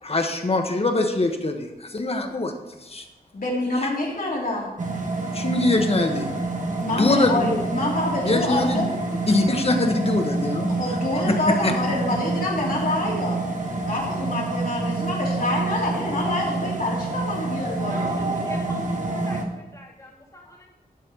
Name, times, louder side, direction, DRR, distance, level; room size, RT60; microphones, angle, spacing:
voice 1, 0.0-2.5 2.8-3.0 5.3-6.3 6.9-7.6 8.2-8.8 9.3-10.7 11.3-11.7, left 2 dB, 40° left, 4 dB, 1.2 m, -23 dB
voice 2, 3.3-4.7 6.8-9.0 10.7-13.4 13.8-18.2, left 1 dB, 65° left, -4 dB, 3.0 m, -27 dB
sound 1, 4.8-19.4, right 2 dB, 55° right, 1.5 m, -27 dB
voice 3, 17.9-20.7, left 1 dB, 20° left, -3 dB, 3.0 m, -41 dB
11.5 x 4.2 x 7.0 m, 1.0 s
wide cardioid pair, 105°, 16 cm